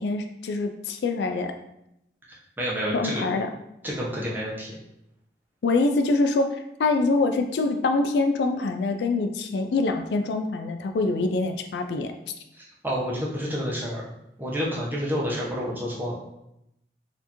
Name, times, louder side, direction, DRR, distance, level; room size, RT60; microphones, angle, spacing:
voice 1, 0.0-1.5 2.9-3.5 5.6-12.1, left 3 dB, 70° left, 6 dB, 0.3 m, -25 dB
voice 2, 2.6-3.2 3.8-4.7 12.5-14.0 14.4-16.2, equal, 10° right, -5 dB, 0.7 m, -29 dB
4.3 x 2.6 x 2.9 m, 0.82 s
head